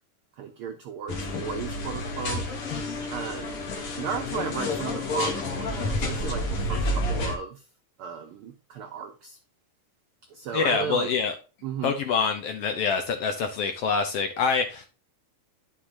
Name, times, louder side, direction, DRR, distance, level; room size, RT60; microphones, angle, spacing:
voice 1, 0.4-2.4 3.1-3.6 4.0-6.4 6.7-7.6 8.0-9.4 10.3-11.1 11.6-11.9, right 7 dB, 85° right, 1.2 m, -35 dB
sound 1, 1.1-7.4, left 2 dB, 55° left, 2.1 m, -30 dB
voice 2, 10.5-11.3 11.8-14.9, left 5 dB, 70° left, 1.4 m, -25 dB
11.5 x 5.8 x 2.6 m
omnidirectional pair, 3.5 m